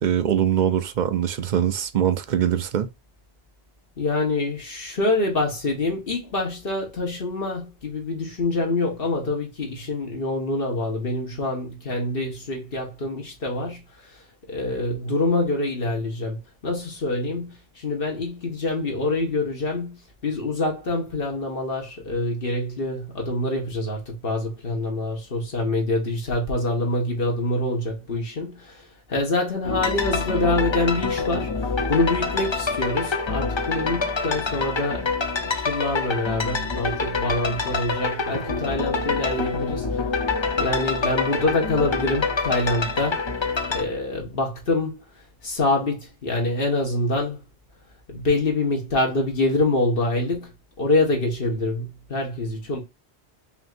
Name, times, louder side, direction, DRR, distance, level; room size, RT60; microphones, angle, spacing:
voice 1, 0.0-2.9, right 9 dB, 55° right, 0.6 m, -22 dB
voice 2, 4.0-14.1 14.5-35.1 35.4-40.0 40.6-43.2 43.7-45.0 45.4-47.4 48.1-50.5 50.8-52.8, left 2 dB, 60° left, 1.7 m, -26 dB
sound 1, 29.6-43.8, left 4 dB, 30° left, 0.7 m, -26 dB
5.5 x 2.9 x 2.5 m
omnidirectional pair, 1.1 m